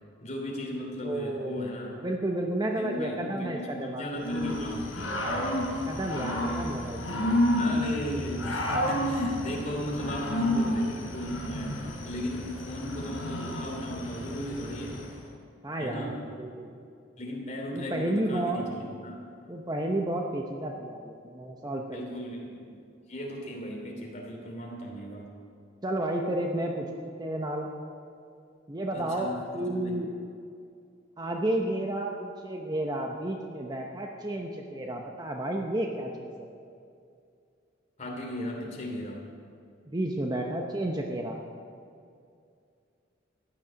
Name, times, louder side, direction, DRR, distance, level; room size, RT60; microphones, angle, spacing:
voice 1, 0.2-2.0 2.7-5.3 7.6-15.1 15.8-16.2 17.2-19.2 21.9-22.7 23.1-25.3 28.9-30.0 38.0-39.3, left 1 dB, 40° left, 0 dB, 2.9 m, -36 dB
voice 2, 1.0-4.0 4.3-4.7 5.9-7.4 10.0-10.1 10.5-10.6 15.6-16.7 17.7-18.6 19.5-22.0 25.8-27.7 28.7-30.1 31.2-36.5 39.9-41.4, right 1 dB, 20° right, 1 dB, 0.8 m, -32 dB
Growling / Cricket, 4.2-15.1, left 1 dB, 85° left, 4.2 m, -30 dB
15.0 x 10.5 x 6.3 m, 2.4 s
head